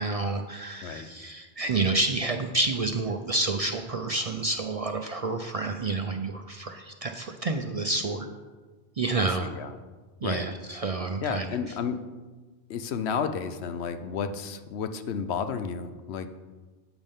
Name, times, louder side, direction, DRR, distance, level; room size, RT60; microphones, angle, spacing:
voice 1, 0.0-8.3 9.0-9.5 10.2-11.5, right 3 dB, 45° right, 5 dB, 0.5 m, -29 dB
voice 2, 9.2-9.7 10.2-10.4 11.2-12.0 12.7-16.3, left 6 dB, 80° left, 9 dB, 0.9 m, -32 dB
11.0 x 8.2 x 3.6 m, 1.3 s
omnidirectional pair, 1.1 m